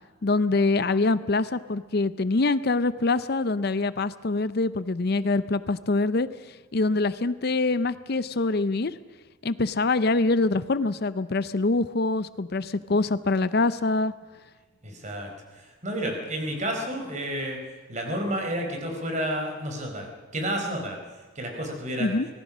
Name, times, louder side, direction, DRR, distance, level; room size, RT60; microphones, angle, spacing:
voice 1, 0.2-6.3 6.7-8.9 9.4-14.1 22.0-22.3, left 3 dB, 50° left, 14 dB, 0.6 m, -24 dB
voice 2, 14.8-17.6 17.9-21.0 21.3-22.2, equal, 35° right, 3 dB, 4.5 m, -31 dB
25.5 x 19.0 x 6.2 m, 1.4 s
head